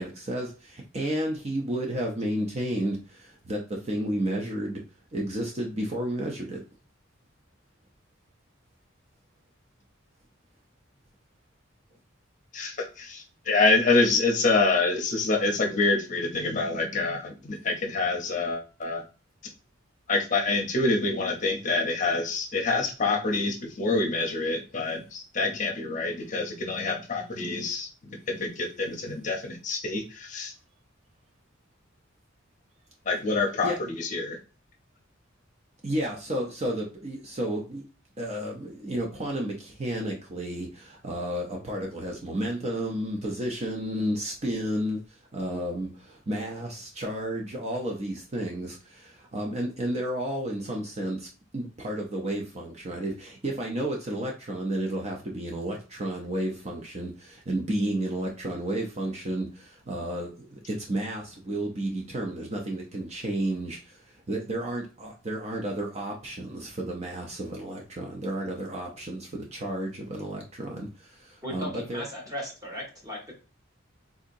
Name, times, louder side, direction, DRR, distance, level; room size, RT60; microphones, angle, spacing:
voice 1, 0.0-4.8 5.1-6.6 33.6-33.8 35.8-37.8 38.2-51.3 51.5-72.0, right 1 dB, 35° right, 0 dB, 0.6 m, -32 dB
voice 2, 12.5-19.0 20.1-27.9 28.3-30.5 33.1-34.4, left 3 dB, 40° left, 2 dB, 0.7 m, -26 dB
voice 3, 71.4-73.3, equal, 20° right, -1 dB, 1.4 m, -37 dB
3.7 x 2.8 x 2.5 m, 0.35 s
head